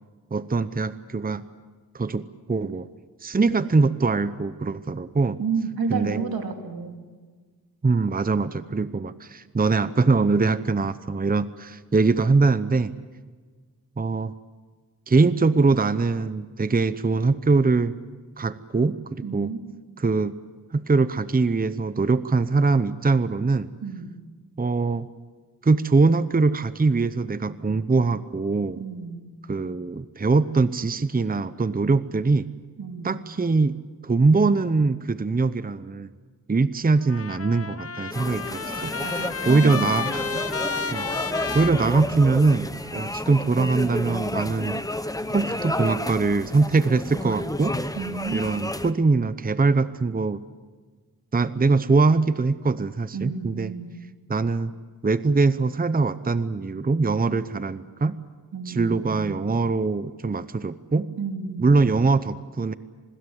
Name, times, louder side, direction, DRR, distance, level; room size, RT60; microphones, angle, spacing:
voice 1, 0.3-1.4 1.9-2.9 3.2-5.4 5.9-6.2 7.8-12.9 14.0-14.3 15.1-18.0 18.4-19.5 20.0-20.4 20.7-23.7 24.6-25.1 25.6-28.8 29.5-32.5 33.0-33.8 34.0-36.1 36.5-38.9 39.5-40.1 40.9-41.1 41.5-42.7 42.9-44.8 45.3-47.8 48.3-50.4 51.3-53.7 54.3-54.7 55.0-58.2 58.7-61.1 61.6-62.7, right 3 dB, 25° right, 14 dB, 0.8 m, -22 dB
voice 2, 5.4-7.0 19.2-19.6 23.8-24.1 28.8-29.2 32.8-33.1 39.0-40.5 48.0-48.4 53.1-54.0 57.3-57.4 58.5-59.0 61.2-61.8, right 5 dB, 85° right, 4 dB, 2.8 m, -31 dB
Trumpet, 37.0-42.6, left 5 dB, 40° left, 1.1 m, -32 dB
sound 1, 38.1-48.9, left 1 dB, 10° left, 1.1 m, -31 dB
26.5 x 20.5 x 7.9 m, 1.4 s
wide cardioid pair, 70°, 35 cm